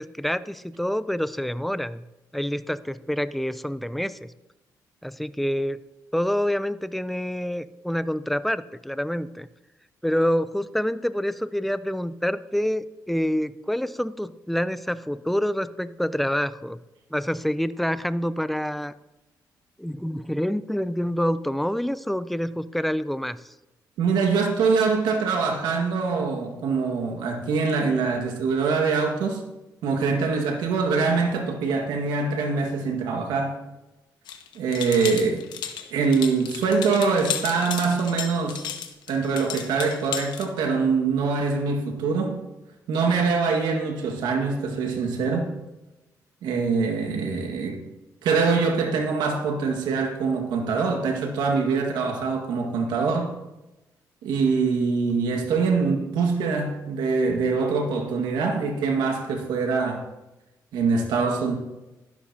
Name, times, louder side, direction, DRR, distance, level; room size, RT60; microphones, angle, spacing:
voice 1, 0.0-2.0 2.3-4.3 5.0-5.8 6.1-9.5 10.0-16.8 17.1-18.9 19.8-23.4, equal, ahead, 14 dB, 0.5 m, -27 dB
voice 2, 24.0-29.4 29.8-33.6 34.5-35.4 35.9-38.6 39.1-42.4 42.9-45.5 46.4-47.8 48.2-53.3 54.2-60.0 60.7-61.5, right 4 dB, 90° right, 3 dB, 1.9 m, -24 dB
sound 1, 34.3-40.5, left 8 dB, 80° left, 1.1 m, -33 dB
12.5 x 11.5 x 2.9 m, 0.99 s
cardioid pair, 80°, 7 cm